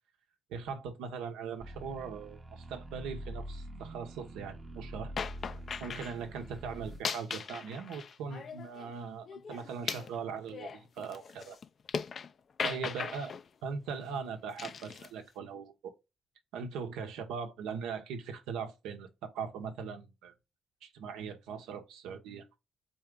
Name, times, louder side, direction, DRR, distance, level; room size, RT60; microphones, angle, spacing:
voice 1, 0.5-5.1 5.8-11.6 12.6-13.3 13.6-15.9 16.5-20.3 20.8-22.5, right 6 dB, 85° right, 0.8 m, -40 dB
sound 1, 1.6-7.0, right 1 dB, 30° right, 0.8 m, -45 dB
sound 2, 5.2-6.1 6.9-8.9 9.3-12.3 12.6-13.4 14.6-15.1, left 6 dB, 55° left, 0.4 m, -39 dB
4.3 x 3.4 x 3.6 m
supercardioid pair, 60°, 0 cm